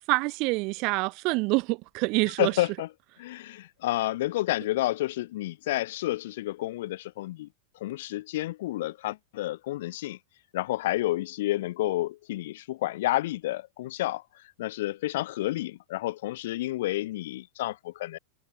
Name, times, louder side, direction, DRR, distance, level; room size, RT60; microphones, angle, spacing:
voice 1, 0.1-2.5, right 27 dB, 40° right, 1.3 m, -26 dB
voice 2, 2.4-2.9 3.2-7.5 7.8-10.2 10.5-14.2 14.6-18.2, left 16 dB, 55° left, 0.4 m, -30 dB
figure-of-eight pair, 90°, 0 cm